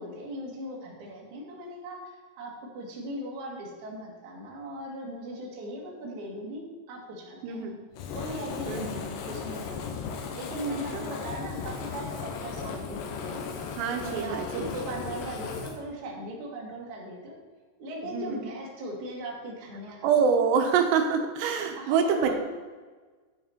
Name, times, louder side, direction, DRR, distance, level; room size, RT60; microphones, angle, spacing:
voice 1, 0.0-7.8 8.1-9.8 10.3-13.4 14.0-17.3 17.8-20.1 21.7-22.4, right 1 dB, 55° right, -3 dB, 3.0 m, -38 dB
voice 2, 7.4-7.8 8.7-9.0 10.9-11.0 13.8-14.7 18.0-18.5 20.0-22.4, right 6 dB, 85° right, 5 dB, 3.1 m, -26 dB
Fire, 7.9-15.8, left 5 dB, 80° left, 3.1 m, -36 dB
9.9 x 6.5 x 4.4 m, 1.4 s
omnidirectional pair, 4.8 m